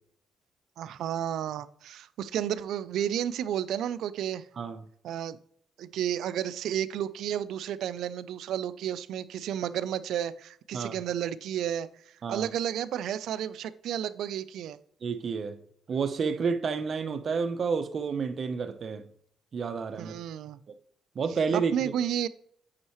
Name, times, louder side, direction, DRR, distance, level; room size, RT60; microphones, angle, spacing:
voice 1, 0.8-4.4 5.0-5.4 5.8-11.9 12.3-14.8 20.0-20.6 21.5-22.3, right 10 dB, 75° right, 0.4 m, -32 dB
voice 2, 15.0-15.6 15.9-19.0 19.5-20.2 20.7-20.8 21.1-21.9, right 5 dB, 50° right, 0.8 m, -30 dB
8.6 x 5.5 x 3.1 m
cardioid pair, 90°, 0 cm